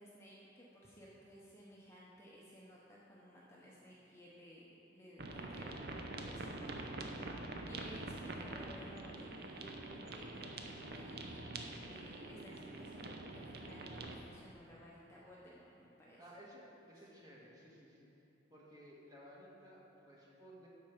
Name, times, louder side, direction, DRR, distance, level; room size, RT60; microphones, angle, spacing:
voice 1, 0.0-11.5 11.8-16.2, equal, 15° left, -6 dB, 0.9 m, -57 dB
sound 1, 5.2-14.2, right 2 dB, 55° right, 0.7 m, -45 dB
voice 2, 16.2-18.1 18.5-20.7, equal, 20° right, -5 dB, 1.5 m, -57 dB
12.5 x 4.6 x 5.2 m, 2.8 s
head